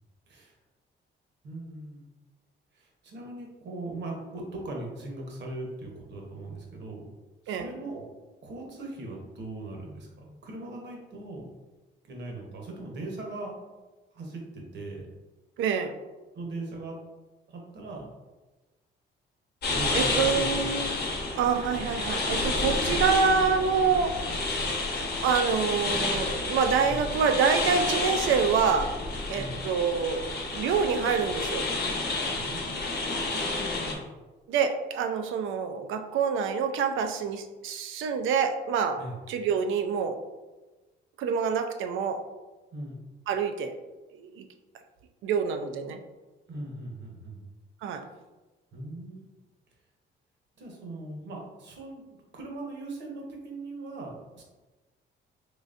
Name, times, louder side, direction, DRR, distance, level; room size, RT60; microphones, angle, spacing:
voice 1, 1.4-2.1 2.7-7.1 7.4-8.0 8.4-11.5 12.1-13.6 14.1-15.1 16.3-17.0 17.5-18.1 19.7-20.7 26.8-27.0 29.3-29.6 32.3-34.0 39.0-39.2 42.7-43.0 46.5-47.4 48.7-49.2 50.6-52.0 52.3-54.4, right 2 dB, 65° right, 0 dB, 1.0 m, -39 dB
voice 2, 15.6-15.9 19.9-20.9 21.4-24.2 25.2-28.9 29.3-30.3 30.5-31.6 34.5-39.0 39.3-40.2 41.2-42.2 43.3-43.7 44.2-44.5 45.2-46.0 47.8-48.1, right 6 dB, 80° right, 6 dB, 0.4 m, -26 dB
sound 1, 19.6-33.9, left 3 dB, 55° left, 0.8 m, -30 dB
3.9 x 3.2 x 2.5 m, 1.2 s
cardioid pair, 90°, 20 cm